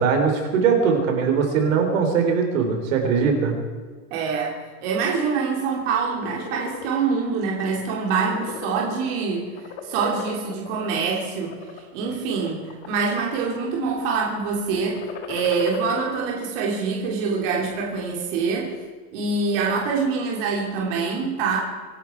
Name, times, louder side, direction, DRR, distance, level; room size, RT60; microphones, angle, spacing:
voice 1, 0.0-3.5, right 6 dB, 65° right, 3 dB, 3.8 m, -21 dB
voice 2, 4.1-4.5 4.8-9.5 9.8-11.5 11.9-18.7 19.1-21.6, right 5 dB, 40° right, -2 dB, 3.3 m, -25 dB
sound 1, 6.0-6.9 7.4-7.6 7.9-9.2 9.6-10.7 11.3-11.8 12.4-13.1 13.4-13.9 14.8-16.1, left 7 dB, 25° left, 1.3 m, -37 dB
25.0 x 11.5 x 4.7 m, 1.5 s
supercardioid pair, 180°, 43 cm